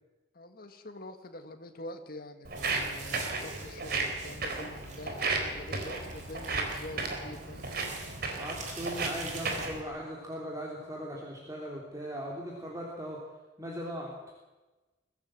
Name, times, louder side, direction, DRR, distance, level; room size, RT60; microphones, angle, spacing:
voice 1, 0.3-7.7, left 1 dB, 55° left, 6 dB, 1.9 m, -45 dB
Walk footsteps, 2.4-9.8, right 3 dB, 60° right, 3.9 m, -34 dB
sound 1, 2.6-9.7, right 4 dB, 45° right, 3.9 m, -47 dB
voice 2, 8.3-13.2 13.6-14.1, equal, 20° right, -2 dB, 3.3 m, -39 dB
22.5 x 16.0 x 7.8 m, 1.2 s
head